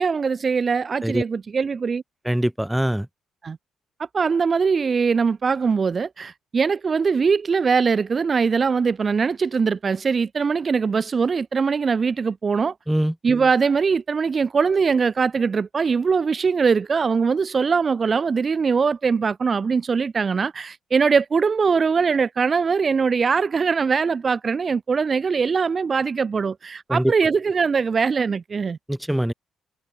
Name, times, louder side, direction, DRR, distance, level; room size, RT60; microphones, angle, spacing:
voice 1, 0.0-2.0 3.4-3.6 4.1-12.7 13.2-28.8, right 5 dB, 40° right, 1.1 m, -21 dB
voice 2, 2.3-3.1 12.9-13.1 26.9-27.1 28.9-29.3, right 1 dB, 5° right, 2.0 m, -22 dB
cardioid pair, 90°, 0 cm